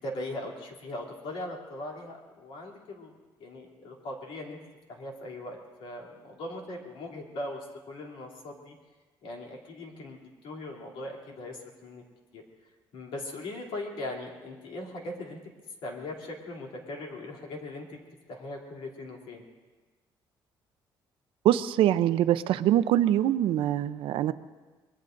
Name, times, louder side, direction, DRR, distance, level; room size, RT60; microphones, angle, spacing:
voice 1, 0.0-4.6 4.9-8.7 9.2-12.0 12.3-12.4 12.9-15.4 15.8-17.9 18.3-19.4, left 1 dB, 80° left, -1 dB, 3.0 m, -39 dB
voice 2, 21.4-24.3, right 12 dB, 80° right, 13 dB, 0.6 m, -24 dB
24.5 x 22.0 x 2.6 m, 1.3 s
cardioid pair, 180°, 9 cm